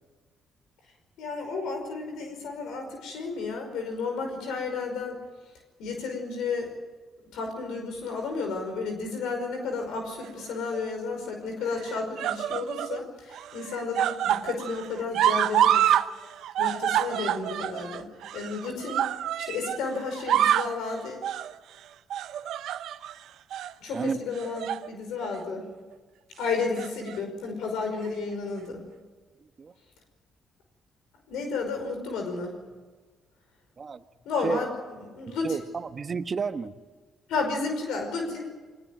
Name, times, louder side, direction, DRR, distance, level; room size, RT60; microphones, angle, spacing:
voice 1, 1.2-5.2 5.8-6.7 7.3-15.9 16.6-19.1 19.5-21.3 23.8-25.7 26.4-28.8 31.3-32.5 34.3-35.6 37.3-38.5, left 4 dB, 85° left, 5.3 m, -32 dB
sound 1, 10.2-10.8 11.7-13.0 13.3-16.1 16.3-19.8 20.1-20.8 21.2-21.5 22.1-23.1 23.5-23.7 24.4-24.9 25.2-25.4 26.5-27.2 28.1-28.2, right 11 dB, 80° right, 0.8 m, -27 dB
voice 2, 35.4-36.7, right 5 dB, 40° right, 1.3 m, -30 dB
22.5 x 20.0 x 9.3 m
cardioid pair, 90°, 0 cm